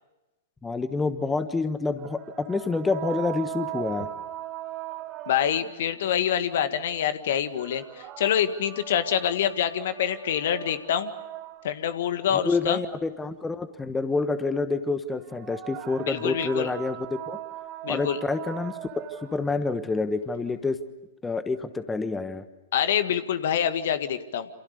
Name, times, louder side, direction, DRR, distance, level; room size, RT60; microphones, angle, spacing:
voice 1, 0.6-4.1 12.4-17.0 17.3-17.4 17.9-18.7 19.3-20.8 21.2-22.4, left 3 dB, 10° left, 11 dB, 1.3 m, -28 dB
sound 1, 2.0-5.9 7.5-12.0 15.2-19.6, right 14 dB, 35° right, 2.5 m, -39 dB
voice 2, 5.3-11.1 11.6-12.8 16.0-16.7 17.8-18.2 22.7-24.5, left 9 dB, 60° left, 11 dB, 1.8 m, -26 dB
29.0 x 27.5 x 6.8 m, 1.0 s
figure-of-eight pair, 110°, 0 cm